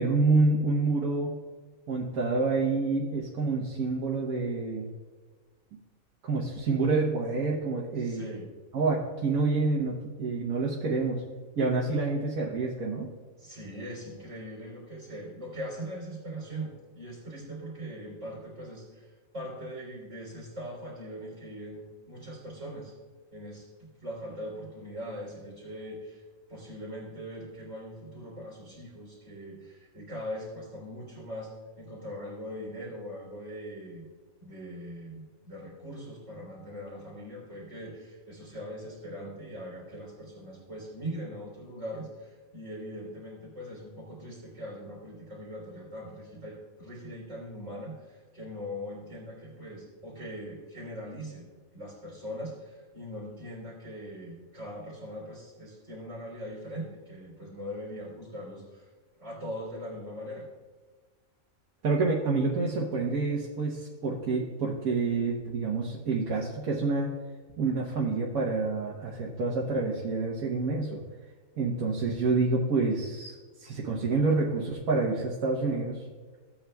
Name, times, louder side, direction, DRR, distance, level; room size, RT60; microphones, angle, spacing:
voice 1, 0.0-1.4 1.9-4.9 6.2-8.2 8.7-11.2 11.6-13.1 61.8-67.1 67.6-71.0 71.6-76.0, right 3 dB, 85° right, -4 dB, 1.4 m, -28 dB
voice 2, 8.0-8.5 13.4-19.1 19.3-22.9 23.3-23.7 24.0-26.2 26.5-31.5 31.8-34.0 34.4-51.5 51.7-58.9 59.2-60.5, equal, 60° right, -4 dB, 3.2 m, -41 dB
15.5 x 8.6 x 2.2 m, 1.4 s
omnidirectional pair, 1.5 m